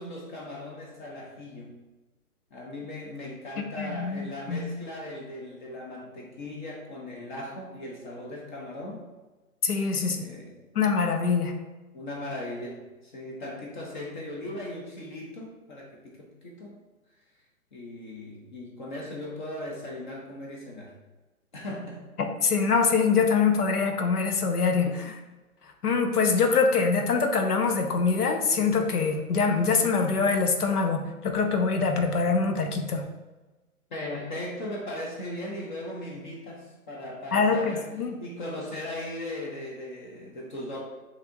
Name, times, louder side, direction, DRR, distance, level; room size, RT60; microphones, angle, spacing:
voice 1, 0.0-1.8 2.5-9.0 10.1-10.6 11.9-16.8 17.7-20.9 21.5-22.0 25.0-25.1 33.9-37.9 38.2-40.8, left 1 dB, 35° left, -1 dB, 0.7 m, -38 dB
voice 2, 3.8-4.7 9.6-10.2 10.7-11.5 22.2-25.2 25.8-33.1 37.3-38.2, left 5 dB, 80° left, 5 dB, 0.9 m, -24 dB
7.2 x 2.8 x 2.6 m, 1.2 s
hypercardioid pair, 135°, 45 cm